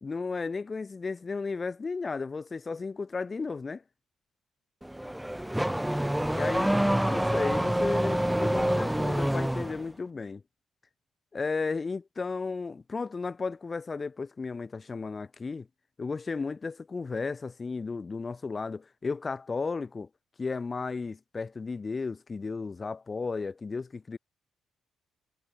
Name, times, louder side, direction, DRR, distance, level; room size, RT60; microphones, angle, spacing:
voice 1, 0.0-3.8 6.3-6.7 7.1-10.4 11.3-15.7 16.0-20.1 20.4-24.2, left 4 dB, 30° left, 2.1 m, -34 dB
Car / Accelerating revving vroom, 4.8-9.8, right 1 dB, 5° right, 0.8 m, -27 dB
cardioid pair, 90°, 0 cm